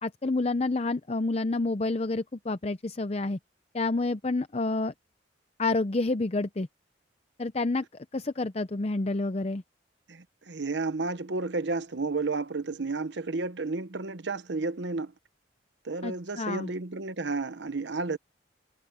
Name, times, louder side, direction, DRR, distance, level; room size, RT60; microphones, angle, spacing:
voice 1, 0.0-3.4 3.7-4.9 5.6-6.7 7.4-7.9 8.1-9.6 16.0-16.7, left 2 dB, 35° left, 0.6 m, -29 dB
voice 2, 10.1-15.1 15.8-18.2, right 3 dB, 70° right, 0.9 m, -32 dB
head